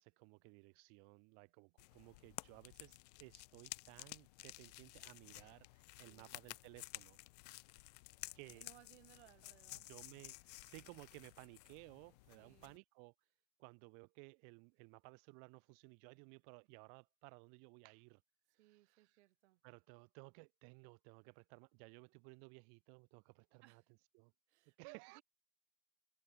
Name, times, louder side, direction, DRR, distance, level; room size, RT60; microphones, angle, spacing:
voice 1, 0.0-7.2 8.3-8.7 9.7-13.1 13.6-18.2 18.5-19.2 19.6-23.8 24.1-24.3 24.8-25.2, right 40 dB or more, 30° right, 1.4 m, -58 dB
sound 1, 1.8-12.8, left 22 dB, 30° left, 0.7 m, -54 dB
voice 2, 6.0-6.3 8.5-9.9 12.3-12.7 18.6-19.6 23.6-23.9 24.5-25.2, right 17 dB, 50° right, 4.5 m, -65 dB
hypercardioid pair, 150°, 45 cm